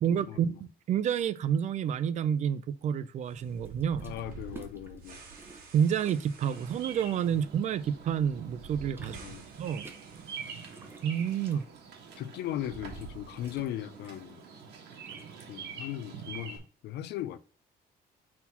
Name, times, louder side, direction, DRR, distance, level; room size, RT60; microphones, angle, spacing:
voice 1, 0.0-4.1 5.7-9.2 9.6-9.9 11.0-11.6, right 8 dB, 45° right, 0.4 m, -29 dB
sound 1, 3.2-11.4 11.7-11.8 12.4-13.8, right 4 dB, 60° right, 2.0 m, -50 dB
sound 2, 3.6-8.2 8.5-16.5, right 3 dB, 15° right, 0.7 m, -54 dB
voice 2, 4.0-5.2 9.0-9.5 11.5-11.6 12.2-14.4 15.5-17.4, left 12 dB, 80° left, 0.5 m, -38 dB
Bird vocalization bird call bird song, 6.5-16.6, right 6 dB, 85° right, 1.9 m, -46 dB
4.3 x 4.2 x 5.5 m
cardioid pair, 180°, 17 cm